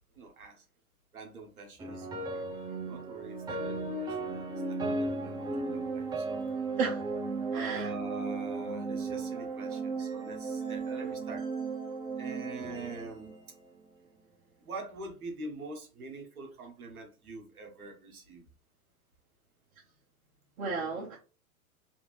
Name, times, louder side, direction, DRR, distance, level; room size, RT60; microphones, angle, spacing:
voice 1, 0.1-0.6 1.1-2.3 2.9-6.4 7.5-11.5 12.2-13.3 14.6-18.4, right 3 dB, 85° right, 2 dB, 1.3 m, -44 dB
sound 1, 1.8-14.1, right 3 dB, 10° right, 0.4 m, -35 dB
voice 2, 7.5-7.9 20.6-21.2, right 4 dB, 65° right, -3 dB, 1.1 m, -33 dB
3.3 x 2.7 x 3.1 m, 0.34 s
hypercardioid pair, 105°, 43 cm